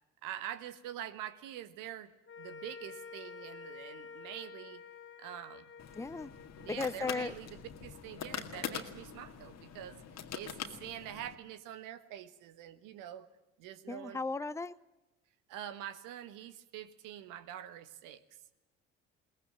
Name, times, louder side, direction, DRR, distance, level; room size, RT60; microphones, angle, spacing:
voice 1, 0.2-2.1 2.4-4.8 5.2-5.7 6.6-10.0 10.3-13.3 13.6-14.2 15.5-18.2, right 11 dB, 65° right, 12 dB, 1.4 m, -45 dB
sound 1, 2.3-8.7, left 5 dB, 35° left, 2.0 m, -51 dB
sound 2, 5.8-11.4, left 8 dB, 50° left, 2.0 m, -44 dB
voice 2, 5.9-6.3 6.7-7.3 13.9-14.7, left 3 dB, 10° left, 16 dB, 0.7 m, -36 dB
22.0 x 18.5 x 8.8 m, 0.98 s
hypercardioid pair, 55°, 34 cm